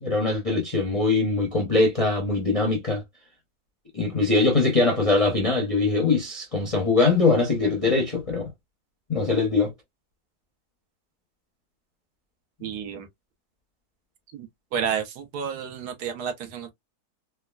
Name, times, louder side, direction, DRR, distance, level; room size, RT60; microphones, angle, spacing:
voice 1, 0.0-3.0 3.9-8.5 9.1-9.7, left 3 dB, 45° left, 0.4 m, -22 dB
voice 2, 12.6-13.1 14.3-16.7, right 7 dB, 80° right, 1.3 m, -31 dB
3.5 x 2.2 x 2.2 m
omnidirectional pair, 1.7 m